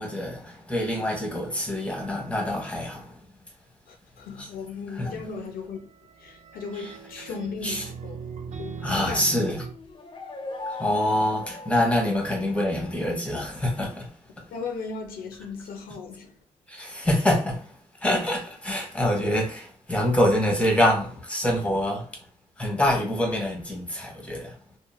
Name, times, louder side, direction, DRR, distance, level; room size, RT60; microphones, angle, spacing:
voice 1, 0.0-3.2 4.4-4.5 4.9-5.3 6.7-7.2 7.6-7.8 8.8-9.6 10.7-14.1 16.7-17.7 18.0-22.1 22.6-24.5, left 1 dB, 10° left, 1.1 m, -26 dB
voice 2, 3.9-5.9 6.2-9.5 14.5-16.4, left 4 dB, 70° left, 0.5 m, -37 dB
sound 1, 5.8-9.7, right 6 dB, 50° right, 0.4 m, -39 dB
sound 2, 9.7-12.6, left 3 dB, 35° left, 0.7 m, -38 dB
2.9 x 2.1 x 2.2 m
cardioid pair, 75°, 15 cm